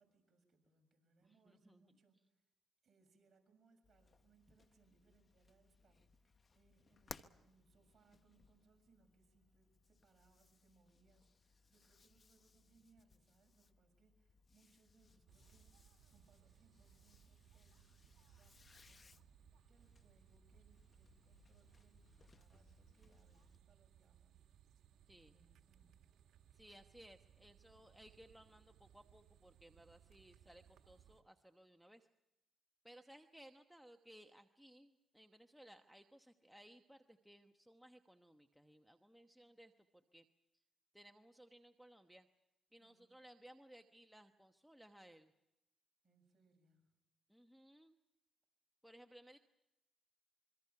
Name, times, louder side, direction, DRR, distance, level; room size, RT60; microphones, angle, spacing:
voice 1, 0.0-2.5 2.8-24.7 25.3-26.0 42.8-43.2 46.0-46.9, right 4 dB, 40° right, 3 dB, 7.0 m, -74 dB
voice 2, 1.5-1.8 25.1-25.3 26.5-32.1 32.8-39.7 40.1-40.2 40.9-42.3 42.7-45.3 47.3-47.9 48.8-49.4, right 1 dB, ahead, 6 dB, 1.1 m, -61 dB
sound 1, 3.8-23.6, left 4 dB, 35° left, 1.1 m, -64 dB
sound 2, 15.3-31.2, right 9 dB, 70° right, 1.9 m, -67 dB
26.0 x 23.5 x 5.9 m, 0.94 s
cardioid pair, 90°, 0 cm